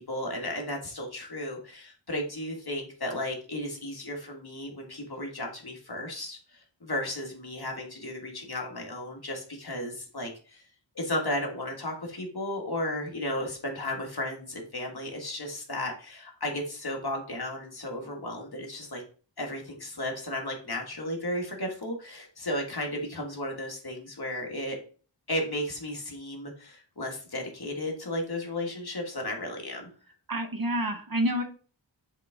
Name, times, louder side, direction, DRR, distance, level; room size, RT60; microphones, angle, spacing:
voice 1, 0.0-10.6 11.0-19.0 19.4-24.8 25.3-29.9, left 1 dB, 55° left, 0 dB, 1.7 m, -34 dB
voice 2, 30.3-31.4, right 1 dB, 50° right, 6 dB, 1.0 m, -28 dB
7.3 x 3.7 x 3.5 m, 0.40 s
wide cardioid pair, 60°, 45 cm